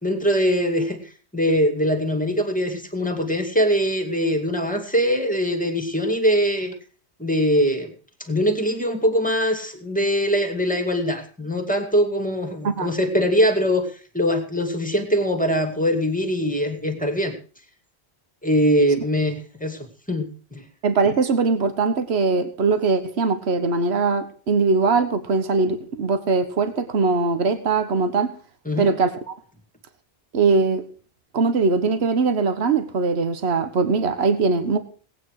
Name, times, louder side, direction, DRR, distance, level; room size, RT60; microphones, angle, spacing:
voice 1, 0.0-1.0 1.3-6.7 7.2-7.9 8.2-17.3 18.4-19.8 20.1-20.7 28.7-28.9, equal, 5° left, 2.3 m, -22 dB
voice 2, 20.8-28.3 28.8-29.3 30.3-30.8 31.3-34.8, right 4 dB, 75° right, 1.5 m, -21 dB
18.0 x 9.3 x 4.8 m
omnidirectional pair, 1.1 m